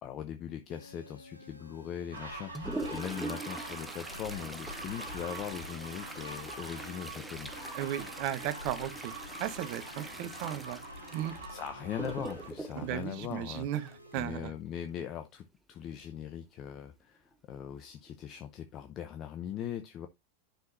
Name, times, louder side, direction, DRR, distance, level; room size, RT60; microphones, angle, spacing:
voice 1, 0.0-7.5 11.5-20.1, left 9 dB, 35° left, 0.7 m, -40 dB
sound 1, 0.7-14.4, left 1 dB, 85° left, 1.1 m, -53 dB
Toilet flush, 2.1-14.1 16.0-16.1 16.4-16.5 17.3-17.4 18.1-18.3 18.8-18.9, right 2 dB, 5° right, 0.9 m, -43 dB
sound 2, 2.1-12.5, right 1 dB, 75° right, 3.2 m, -45 dB
voice 2, 7.8-9.1 9.4-10.8 11.1-11.3 12.7-14.5, right 12 dB, 45° right, 0.9 m, -35 dB
10.5 x 5.7 x 2.5 m
figure-of-eight pair, 90°, 0 cm